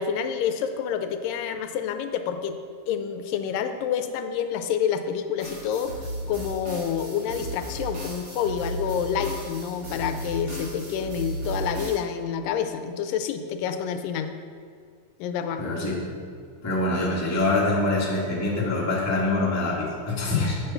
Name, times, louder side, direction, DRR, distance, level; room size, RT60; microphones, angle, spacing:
voice 1, 0.0-2.6 2.9-6.0 6.3-14.3 15.2-15.6, left 8 dB, 90° left, 8 dB, 2.3 m, -28 dB
sound 1, 5.4-12.0, right 1 dB, 40° right, 2.8 m, -35 dB
voice 2, 15.6-16.1 16.6-20.6, left 2 dB, 10° left, -5 dB, 1.0 m, -25 dB
8.1 x 8.0 x 5.6 m, 2.2 s
omnidirectional pair, 3.8 m